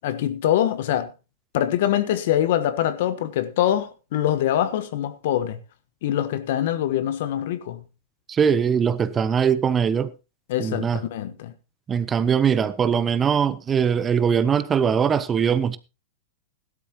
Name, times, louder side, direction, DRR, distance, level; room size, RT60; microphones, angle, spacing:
voice 1, 0.0-1.1 1.5-5.6 6.0-7.8 10.5-11.5, left 11 dB, 60° left, 1.3 m, -24 dB
voice 2, 8.3-10.1 10.6-11.0 11.9-15.8, right 7 dB, 20° right, 0.8 m, -21 dB
16.5 x 12.0 x 3.0 m
hypercardioid pair, 105°, 0 cm